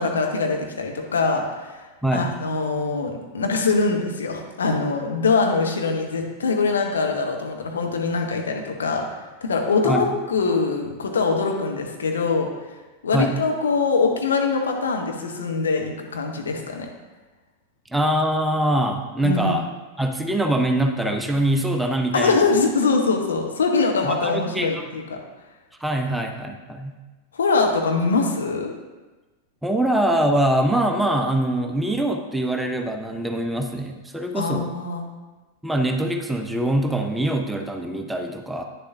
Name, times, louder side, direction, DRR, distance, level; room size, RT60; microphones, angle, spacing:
voice 1, 0.0-1.8 2.1-12.5 13.0-16.9 19.2-19.6 22.1-25.2 27.3-28.7 34.3-35.0, left 4 dB, 70° left, 2 dB, 1.0 m, -23 dB
voice 2, 2.0-2.3 9.8-10.0 13.1-13.4 17.9-19.6 20.0-22.4 24.0-24.8 25.8-27.0 29.6-34.7 35.6-38.6, right 1 dB, 5° right, 4 dB, 0.6 m, -23 dB
9.3 x 6.7 x 2.7 m, 1.2 s
figure-of-eight pair, 90°, 0 cm